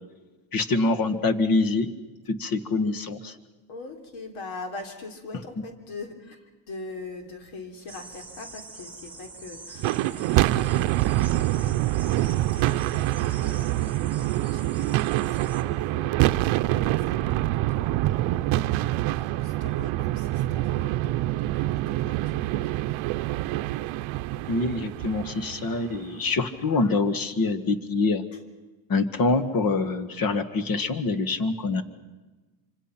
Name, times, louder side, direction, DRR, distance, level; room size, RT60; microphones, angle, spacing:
voice 1, 0.5-1.9 2.3-3.3 24.5-28.2 28.9-31.8, left 3 dB, 45° left, 11 dB, 1.8 m, -25 dB
voice 2, 3.7-12.2 12.5-16.2 16.7-22.9 23.3-23.4 23.8-23.9 28.3-28.4, left 3 dB, 75° left, 5 dB, 3.6 m, -43 dB
sound 1, 7.9-15.6, right 3 dB, 5° right, 2.0 m, -44 dB
sound 2, 9.8-26.2, right 16 dB, 90° right, 0.7 m, -26 dB
26.0 x 25.0 x 5.9 m, 1.2 s
cardioid pair, 130°, 47 cm